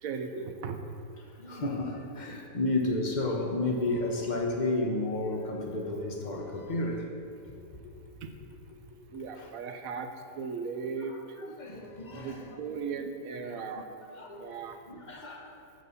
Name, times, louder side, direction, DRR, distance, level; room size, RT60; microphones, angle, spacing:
voice 1, 0.0-0.8 8.2-8.3 9.1-11.4 12.1-13.9 14.4-14.8, right 5 dB, 65° right, 6 dB, 1.0 m, -37 dB
voice 2, 1.4-7.0 11.4-12.4 13.5-13.6 14.2-14.5 14.9-15.5, left 2 dB, 35° left, 1 dB, 0.8 m, -31 dB
11.5 x 4.1 x 7.0 m, 2.5 s
omnidirectional pair, 1.8 m